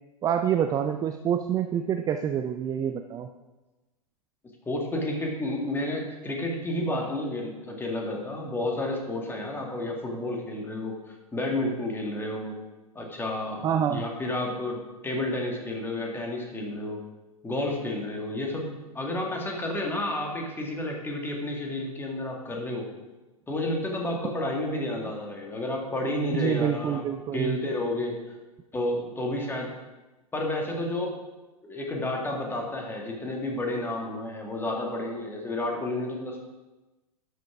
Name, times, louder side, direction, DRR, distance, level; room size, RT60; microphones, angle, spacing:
voice 1, 0.2-3.3 13.6-14.1 26.3-27.6, right 9 dB, 20° right, 7 dB, 0.5 m, -27 dB
voice 2, 4.7-12.6 13.0-17.0 17.4-22.9 23.5-27.0 27.3-28.2 28.7-29.7 30.3-31.2 31.6-36.4, left 1 dB, 10° left, 0 dB, 2.0 m, -31 dB
11.5 x 6.4 x 4.8 m, 1.1 s
figure-of-eight pair, 95°, 19 cm